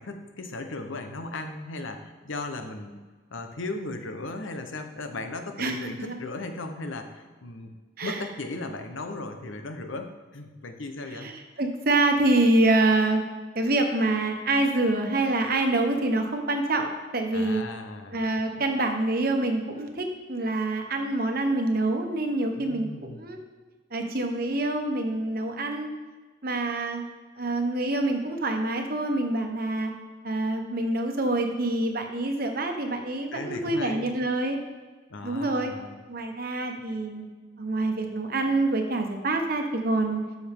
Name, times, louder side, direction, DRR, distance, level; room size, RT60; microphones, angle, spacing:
voice 1, 0.0-3.0 3.3-7.7 8.0-11.3 17.3-18.3 18.6-18.7 22.6-23.3 33.3-34.1 35.1-35.9, left 2 dB, 75° left, 6 dB, 1.0 m, -37 dB
voice 2, 5.6-6.1 8.0-8.2 11.2-11.3 11.6-13.2 13.5-17.6 18.1-23.4 23.9-25.9 26.4-27.0 27.4-29.9 30.2-34.6 35.2-35.7 36.1-37.3 37.6-40.2, right 2 dB, 45° right, 4 dB, 1.2 m, -26 dB
12.5 x 7.1 x 3.7 m, 1.4 s
head